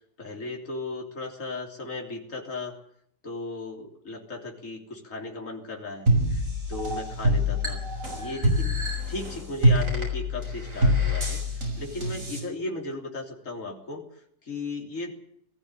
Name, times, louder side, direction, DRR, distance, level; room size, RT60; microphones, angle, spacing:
voice 1, 0.0-2.8 3.2-7.8 8.2-15.1, left 3 dB, 45° left, 1 dB, 3.7 m, -36 dB
sound 1, 6.1-12.4, equal, 45° right, 6.7 m, -25 dB
19.5 x 15.0 x 9.8 m, 0.71 s
omnidirectional pair, 1.9 m